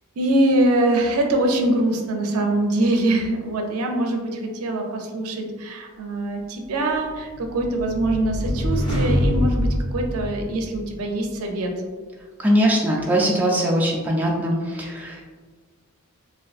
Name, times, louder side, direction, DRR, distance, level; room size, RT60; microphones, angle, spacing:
voice 1, 0.2-11.7, right 1 dB, 75° right, 2 dB, 0.5 m, -23 dB
sound 1, 7.1-10.9, equal, 20° left, 0.7 m, -24 dB
voice 2, 12.4-15.2, equal, 5° right, -4 dB, 0.4 m, -21 dB
3.4 x 2.5 x 2.4 m, 1.4 s
head